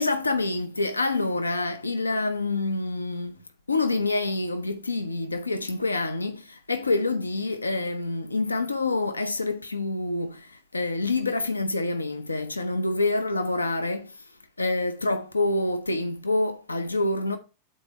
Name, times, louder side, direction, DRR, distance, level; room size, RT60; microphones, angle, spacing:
voice 1, 0.0-3.3 3.7-14.1 14.6-17.4, left 2 dB, 80° left, 0.8 m, -27 dB
7.5 x 4.4 x 4.5 m
figure-of-eight pair, 90°, 0 cm